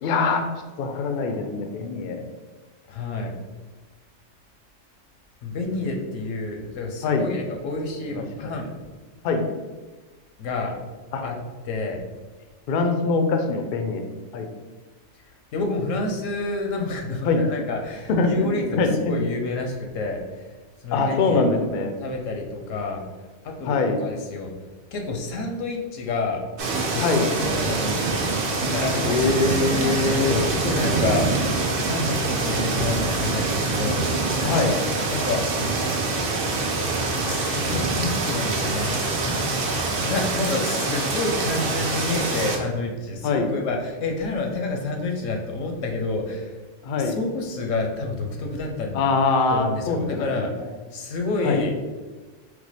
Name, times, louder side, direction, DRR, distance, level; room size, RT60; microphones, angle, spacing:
voice 1, 0.0-0.4 0.8-2.2 7.0-7.3 8.1-8.5 9.2-9.4 11.1-11.2 12.7-14.0 14.3-14.5 17.3-17.4 18.1-19.1 20.9-21.9 23.6-24.0 27.0-27.3 29.0-30.4 34.4-34.8 43.2-43.5 46.8-47.2 48.9-50.7 51.4-51.6, left 3 dB, 60° left, 5 dB, 0.5 m, -23 dB
voice 2, 2.9-3.3 5.4-8.7 10.4-10.8 11.2-11.4 11.6-12.0 15.5-20.5 20.8-21.7 22.0-23.0 23.4-24.5 24.9-26.4 26.9-28.2 28.6-34.0 35.1-35.4 37.2-39.0 40.0-46.5 47.0-49.0 49.5-50.6 50.9-51.7, left 3 dB, 90° left, 2 dB, 1.0 m, -29 dB
sound 1, 26.6-42.5, right 3 dB, 55° right, 0.7 m, -25 dB
4.5 x 2.1 x 4.1 m, 1.3 s
omnidirectional pair, 1.3 m